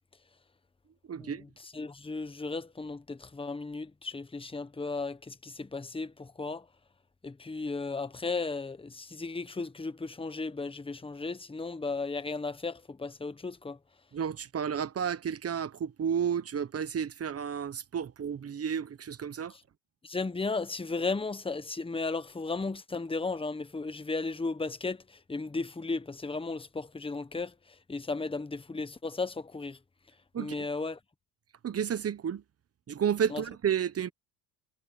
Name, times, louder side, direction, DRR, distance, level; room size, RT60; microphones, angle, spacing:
voice 1, 1.1-1.4 14.1-19.5 30.3-30.7 31.6-32.4 32.9-34.1, right 8 dB, 30° right, 1.2 m, -31 dB
voice 2, 1.7-6.6 7.2-13.8 20.0-25.0 25.3-27.5 27.9-29.8 30.4-31.0 33.3-33.4, left 3 dB, 10° left, 1.4 m, -35 dB
supercardioid pair, 100°, 46 cm